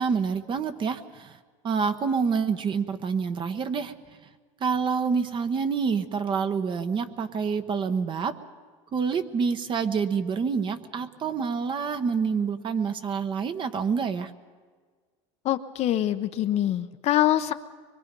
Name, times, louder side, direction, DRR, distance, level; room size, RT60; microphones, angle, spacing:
voice 1, 0.0-1.4 1.6-3.9 4.6-8.4 8.9-14.3, right 5 dB, 35° right, 9 dB, 1.2 m, -27 dB
voice 2, 15.4-17.5, left 12 dB, 45° left, 10 dB, 0.8 m, -24 dB
24.5 x 22.5 x 5.4 m, 1.5 s
supercardioid pair, 110°, 15 cm